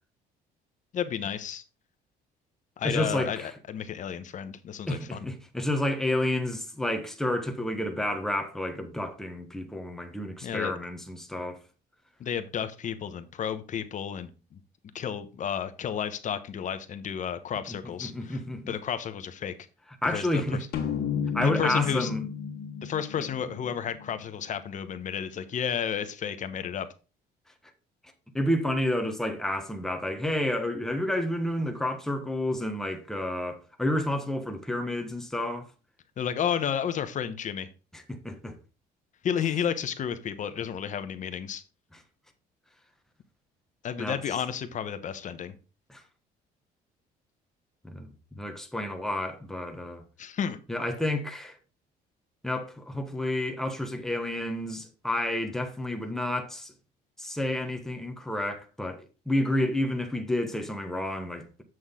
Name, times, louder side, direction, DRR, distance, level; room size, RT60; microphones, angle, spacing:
voice 1, 0.9-1.6 2.8-5.3 10.4-10.7 12.2-14.6 14.9-18.4 18.7-19.5 20.1-20.7 21.4-22.1 22.8-26.9 36.2-37.7 39.2-41.6 43.8-45.6 50.2-50.6, left 8 dB, 50° left, 1.0 m, -32 dB
voice 2, 2.8-3.5 4.9-11.6 18.0-18.8 20.0-20.6 21.3-22.3 23.2-23.3 28.3-35.7 37.9-38.5 44.0-44.2 45.9-46.0 47.8-50.0 50.7-51.6 52.4-56.7 57.2-61.6, left 1 dB, 5° left, 1.3 m, -30 dB
sound 1, 20.7-24.2, left 7 dB, 70° left, 1.5 m, -32 dB
7.7 x 6.3 x 3.7 m
cardioid pair, 110°, 17 cm